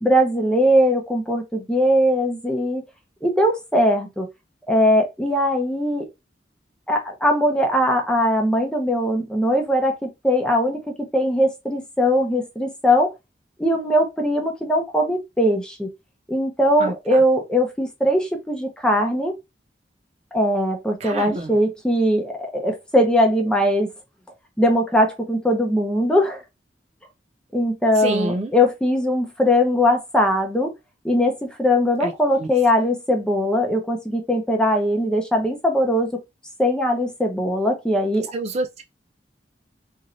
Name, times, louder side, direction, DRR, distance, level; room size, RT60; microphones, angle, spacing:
voice 1, 0.0-2.8 3.2-4.3 4.7-6.1 6.9-13.1 13.6-15.9 16.3-19.3 20.3-23.9 24.6-26.4 27.5-30.7 31.0-36.2 36.6-38.3, equal, 5° left, 0.7 m, -20 dB
voice 2, 16.8-17.2 21.0-21.5 28.0-28.5 32.0-32.1 32.4-32.5 38.3-38.8, right 2 dB, 40° right, 0.3 m, -27 dB
3.1 x 2.6 x 2.6 m
head